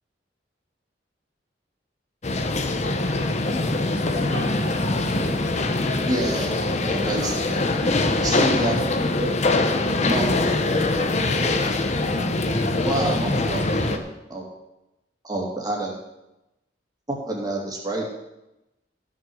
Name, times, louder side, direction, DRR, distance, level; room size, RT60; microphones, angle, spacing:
sound 1, 2.2-14.0, left 2 dB, 40° left, 0.9 m, -23 dB
voice 1, 4.3-5.0 7.2-8.5, right 3 dB, 85° right, 2 dB, 1.8 m, -41 dB
voice 2, 6.1-6.5 6.8-7.6 8.2-8.8 9.2-9.4 10.0-10.2 12.9-14.0 14.3-14.5 15.2-16.0 17.1-18.1, right 1 dB, 25° right, -2 dB, 2.8 m, -27 dB
voice 3, 8.1-8.6 9.9-11.6, left 1 dB, 20° left, -2 dB, 2.7 m, -34 dB
14.0 x 6.7 x 6.4 m, 0.93 s
head